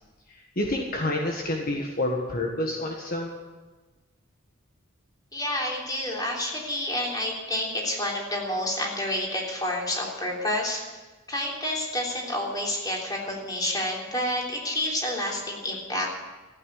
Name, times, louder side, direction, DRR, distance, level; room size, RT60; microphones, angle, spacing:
voice 1, 0.3-3.4, left 1 dB, 45° left, 1 dB, 1.5 m, -28 dB
voice 2, 5.3-10.8 11.3-16.1, left 1 dB, 20° left, -2 dB, 3.5 m, -29 dB
15.0 x 9.3 x 9.4 m, 1.3 s
head